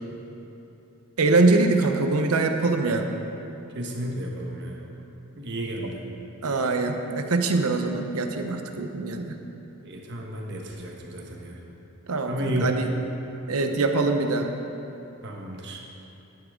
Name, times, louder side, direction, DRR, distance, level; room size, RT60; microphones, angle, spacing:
voice 1, 1.2-3.1 5.8-5.9 6.4-9.4 12.1-12.9 13.5-14.5, right 3 dB, 85° right, 5 dB, 0.8 m, -23 dB
voice 2, 3.7-4.8 5.3-6.0 9.8-11.6 12.3-12.8 15.2-15.8, right 1 dB, 55° right, 0 dB, 1.2 m, -32 dB
11.5 x 9.8 x 3.7 m, 2.9 s
head